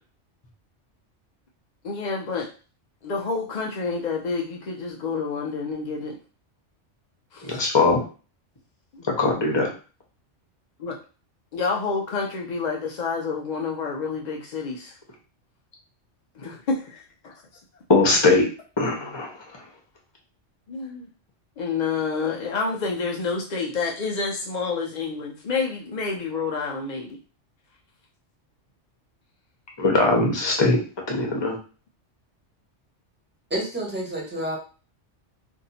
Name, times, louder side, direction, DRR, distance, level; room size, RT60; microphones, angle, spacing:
voice 1, 1.8-2.5 3.0-6.2 7.3-7.4 8.9-9.1 10.8-11.0 11.5-14.9 16.4-17.3 20.7-21.1 21.6-27.2, left 4 dB, 55° left, 0 dB, 0.5 m, -28 dB
voice 2, 7.4-8.0 9.2-9.7 17.9-18.4 18.8-19.3 29.8-30.8 31.1-31.6, left 3 dB, 25° left, 0 dB, 0.8 m, -20 dB
voice 3, 33.5-34.6, right 1 dB, 10° right, -3 dB, 1.2 m, -29 dB
2.7 x 2.6 x 4.1 m, 0.36 s
omnidirectional pair, 1.3 m